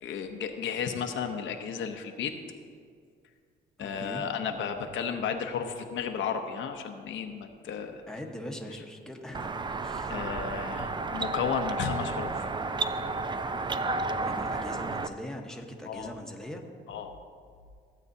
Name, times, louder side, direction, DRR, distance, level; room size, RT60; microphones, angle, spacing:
voice 1, 0.0-2.3 3.8-8.0 10.1-12.5 15.9-16.1 16.9-17.1, left 6 dB, 75° left, 5 dB, 0.8 m, -33 dB
voice 2, 3.8-4.2 8.1-9.5 9.8-10.2 14.2-16.6, left 1 dB, 5° left, 1 dB, 1.1 m, -41 dB
sound 1, 9.3-15.1, right 3 dB, 25° right, 0.4 m, -32 dB
15.5 x 8.2 x 2.7 m, 2.1 s
cardioid pair, 90°, 20 cm